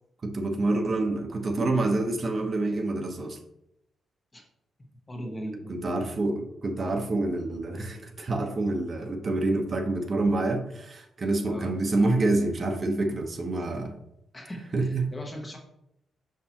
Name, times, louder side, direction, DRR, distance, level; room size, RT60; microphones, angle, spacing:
voice 1, 0.2-3.4 5.7-14.0 14.7-15.1, right 2 dB, 35° right, 3 dB, 1.0 m, -27 dB
voice 2, 4.8-5.7 11.4-11.7 14.3-15.6, equal, 20° left, 1 dB, 1.0 m, -39 dB
5.9 x 5.5 x 2.9 m, 0.80 s
cardioid pair, 130°, 0 cm